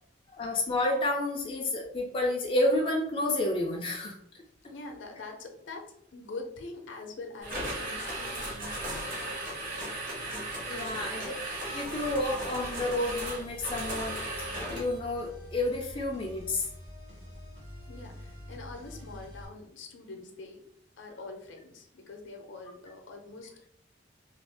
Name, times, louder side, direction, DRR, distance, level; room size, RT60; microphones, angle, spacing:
voice 1, 0.3-4.4 10.7-11.3 11.7-16.7, left 1 dB, 30° left, 0 dB, 0.3 m, -30 dB
voice 2, 4.7-9.9 10.9-11.4 17.9-20.7 21.0-23.7, left 3 dB, 70° left, 3 dB, 0.6 m, -44 dB
sound 1, 7.4-15.0, right 1 dB, 40° right, 0.9 m, -36 dB
sound 2, 11.8-19.4, equal, 65° right, 1.2 m, -47 dB
2.5 x 2.2 x 3.3 m, 0.66 s
head